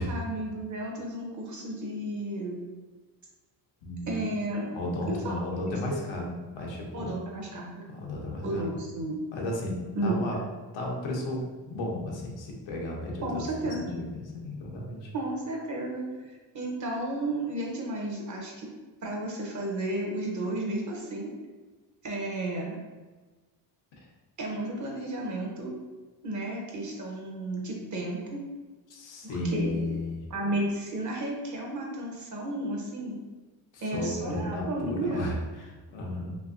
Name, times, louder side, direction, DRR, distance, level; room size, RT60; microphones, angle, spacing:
voice 1, 0.0-2.6 4.0-4.7 5.1-5.8 6.9-7.8 8.4-9.2 10.0-10.2 13.2-13.8 15.1-18.7 19.0-21.3 22.0-22.8 24.4-25.7 26.2-28.4 29.2-29.8 30.3-33.2 33.8-35.3, right 1 dB, 40° right, -1 dB, 0.8 m, -33 dB
voice 2, 3.8-4.2 4.7-7.2 7.9-8.6 9.3-10.4 10.7-15.1 28.9-30.2 33.7-36.4, left 1 dB, 90° left, -2 dB, 0.9 m, -34 dB
3.3 x 2.7 x 2.5 m, 1.3 s
cardioid pair, 90°, 44 cm